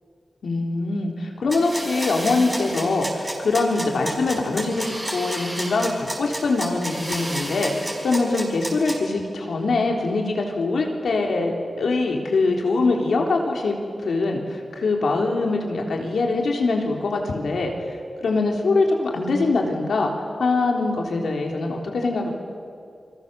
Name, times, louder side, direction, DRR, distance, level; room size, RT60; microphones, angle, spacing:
voice 1, 0.4-13.8 14.0-17.7 18.2-20.1 20.4-22.3, left 3 dB, 85° left, 1 dB, 3.6 m, -23 dB
sound 1, 1.5-8.9, right 1 dB, 15° right, 5.0 m, -31 dB
28.0 x 22.5 x 6.9 m, 2.4 s
wide cardioid pair, 85°, 0 cm